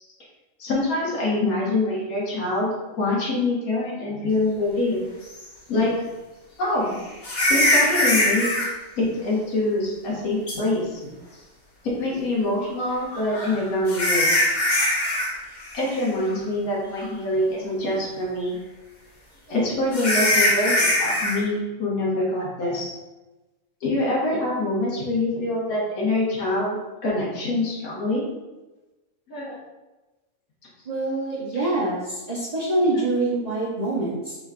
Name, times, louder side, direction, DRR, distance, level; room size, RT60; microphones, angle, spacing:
voice 1, 0.6-5.0 5.7-5.9 6.6-7.0 7.5-8.7 9.0-11.0 11.8-14.3 15.7-18.6 19.5-22.9 23.8-28.2 29.3-29.6, left 2 dB, 80° left, -5 dB, 1.5 m, -25 dB
sound 1, 5.4-5.5 7.2-8.7 10.5-10.6 13.1-15.3 15.6-15.9 16.3-16.4 17.0-17.1 19.9-21.4, left 1 dB, 45° left, 0.6 m, -21 dB
voice 2, 30.9-34.4, right 2 dB, 50° right, -6 dB, 0.4 m, -25 dB
3.6 x 2.2 x 3.6 m, 1.1 s
omnidirectional pair, 1.5 m